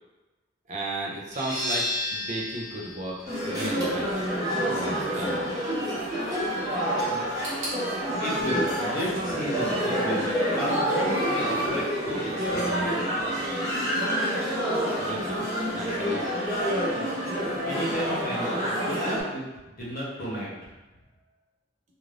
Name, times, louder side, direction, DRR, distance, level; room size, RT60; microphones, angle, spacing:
voice 1, 0.7-3.2 3.5-4.2 4.7-5.5 15.0-16.3, right 1 dB, 40° right, -2 dB, 0.4 m, -34 dB
sound 1, 1.3-6.7, left 2 dB, 20° left, 0.8 m, -35 dB
sound 2, 3.2-19.2, equal, 20° right, 0.8 m, -28 dB
sound 3, 7.4-10.3 10.5-11.4 11.6-11.7 12.6-12.7, right 1 dB, 70° right, 1.1 m, -42 dB
voice 2, 8.2-13.5 17.6-20.7, equal, 45° left, -6 dB, 0.9 m, -33 dB
2.5 x 2.4 x 3.2 m, 1.1 s
head